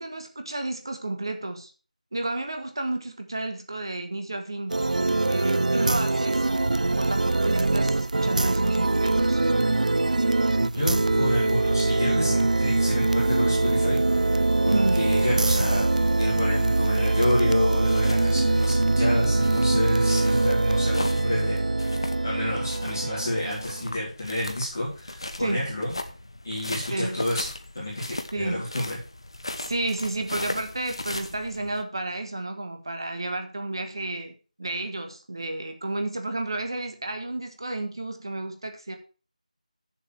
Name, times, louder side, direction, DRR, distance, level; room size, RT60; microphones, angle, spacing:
voice 1, 0.0-1.7 2.1-4.8 5.3-9.4 14.7-15.1 20.3-20.4 25.4-25.7 26.9-27.2 28.3-28.7 29.6-39.0, right 2 dB, 35° right, 5 dB, 1.6 m, -31 dB
sound 1, 4.7-23.9, right 2 dB, 75° right, 0.4 m, -23 dB
voice 2, 10.6-14.0 14.3-21.6 22.2-25.9 26.4-27.5 27.7-29.0, left 1 dB, 25° left, -8 dB, 3.7 m, -29 dB
sound 2, 17.5-31.8, left 2 dB, 40° left, 1.0 m, -39 dB
8.0 x 7.2 x 6.1 m, 0.35 s
figure-of-eight pair, 180°, 4 cm